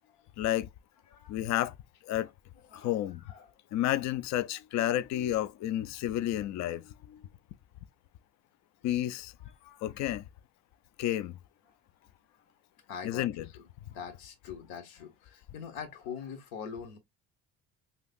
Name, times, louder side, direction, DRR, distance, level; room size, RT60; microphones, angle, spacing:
voice 1, 0.4-0.7 1.3-1.7 2.0-2.3 2.7-3.2 3.7-7.2 8.8-9.3 9.8-10.2 11.0-11.3 13.0-13.4, left 13 dB, 50° left, 0.4 m, -31 dB
voice 2, 1.1-1.4 2.6-3.8 9.4-10.0 11.7-11.8 12.3-12.4 12.9-17.0, left 7 dB, 80° left, 1.1 m, -44 dB
3.3 x 2.8 x 2.4 m
supercardioid pair, 80°, 35 cm